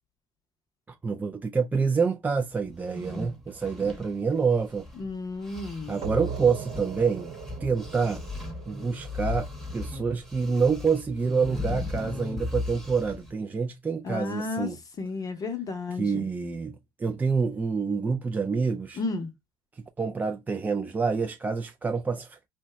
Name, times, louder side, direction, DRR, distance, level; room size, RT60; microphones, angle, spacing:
voice 1, 0.9-4.9 5.9-7.4 7.6-8.2 8.7-14.8 16.0-19.0 19.8-22.4, right 5 dB, 15° right, 0.3 m, -27 dB
sound 1, 2.7-5.1 5.4-13.3, left 3 dB, ahead, 1.0 m, -37 dB
voice 2, 5.0-6.1 14.0-14.7 15.0-16.2 19.0-19.3, left 3 dB, 35° left, 0.7 m, -32 dB
sound 2, 6.0-11.4, right 6 dB, 65° right, 0.9 m, -40 dB
2.7 x 2.1 x 3.3 m
supercardioid pair, 90°, 11 cm